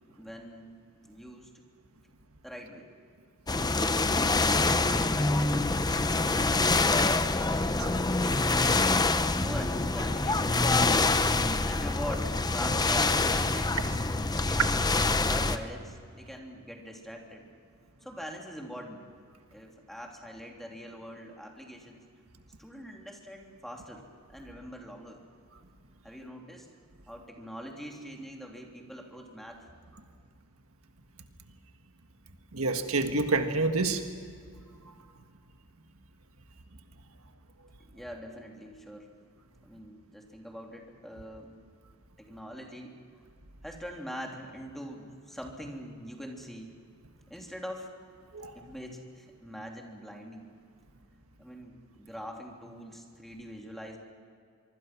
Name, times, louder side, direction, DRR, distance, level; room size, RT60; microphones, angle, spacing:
voice 1, 0.1-0.7 1.1-1.5 2.4-2.9 4.8-5.7 6.1-7.6 8.2-11.2 11.6-13.8 14.3-14.6 15.2-17.4 18.0-19.0 19.5-22.0 22.6-24.0 24.3-25.2 26.0-26.7 27.1-29.6 37.9-39.1 39.6-41.5 42.2-42.9 43.6-46.7 47.3-47.9 48.5-50.5 51.4-54.0, equal, ahead, 0 dB, 3.2 m, -43 dB
sound 1, 3.5-15.6, left 3 dB, 20° left, 0.8 m, -26 dB
voice 2, 32.5-34.1 48.3-48.6, right 3 dB, 70° right, 6 dB, 1.6 m, -28 dB
25.0 x 24.5 x 6.1 m, 2.2 s
head